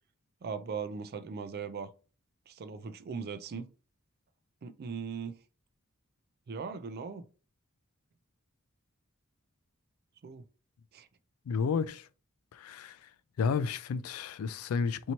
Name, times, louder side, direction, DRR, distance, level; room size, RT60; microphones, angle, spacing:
voice 1, 0.4-1.9 2.5-3.7 4.6-5.4 6.5-7.2 10.2-10.4 10.9-11.1, right 5 dB, 45° right, 0.4 m, -39 dB
voice 2, 11.5-12.1 12.5-13.1 13.4-15.1, left 5 dB, 85° left, 0.3 m, -32 dB
2.9 x 2.7 x 4.3 m
head